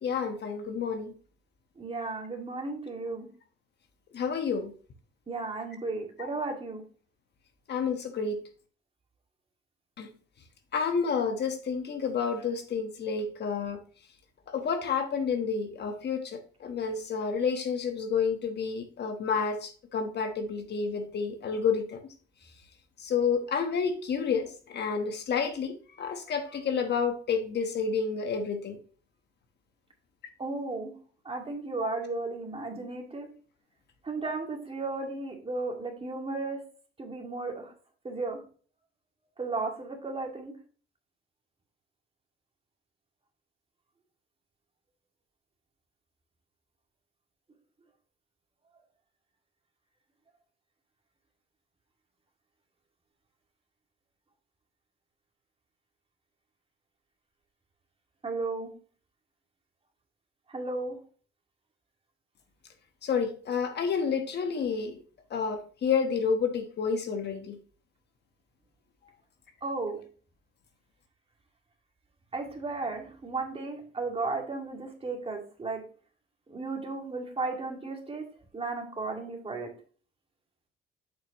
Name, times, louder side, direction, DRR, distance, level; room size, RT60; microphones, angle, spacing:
voice 1, 0.0-1.1 4.1-4.7 7.7-8.4 10.0-10.1 10.7-13.8 14.5-22.0 23.0-28.8 31.8-31.9 63.0-65.0 65.3-67.6, left 6 dB, 60° left, 6 dB, 1.2 m, -30 dB
voice 2, 1.8-3.3 5.3-6.8 30.4-30.9 31.3-33.3 34.0-36.6 37.0-37.7 38.0-38.4 39.4-40.5 58.2-58.7 60.5-61.0 69.6-70.0 72.3-75.8 76.5-78.2 78.5-79.7, right 3 dB, 30° right, 2 dB, 2.0 m, -34 dB
7.5 x 5.8 x 2.9 m, 0.41 s
cardioid pair, 90°, 20 cm